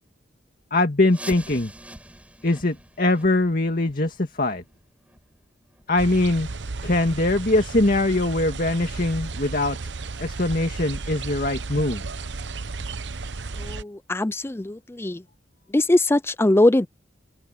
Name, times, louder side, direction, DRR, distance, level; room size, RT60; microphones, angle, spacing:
voice 1, 0.7-1.7 2.4-4.6 5.9-6.5 6.8-9.8 10.2-12.0, left 2 dB, 50° left, 2.1 m, -22 dB
sound 1, 1.1-6.7 7.0-7.1 7.7-7.8 8.4-8.5 9.0-9.1, right 1 dB, 5° right, 7.6 m, -45 dB
sound 2, 6.0-13.8, right 3 dB, 65° right, 0.9 m, -33 dB
voice 2, 13.6-15.2 15.7-16.9, left 1 dB, 15° left, 0.4 m, -21 dB
open air
head